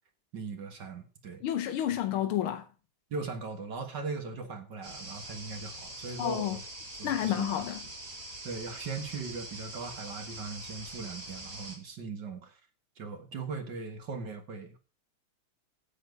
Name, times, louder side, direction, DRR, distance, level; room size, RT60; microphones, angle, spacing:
voice 1, 0.3-1.4 3.1-6.6 7.0-7.6 8.4-12.6 13.0-14.8, right 4 dB, 55° right, 2.1 m, -39 dB
voice 2, 1.4-2.7 6.2-6.6 7.0-7.8, left 11 dB, 80° left, 1.7 m, -30 dB
sound 1, 4.8-11.8, right 1 dB, 40° right, 3.3 m, -44 dB
10.0 x 8.1 x 5.3 m
omnidirectional pair, 2.4 m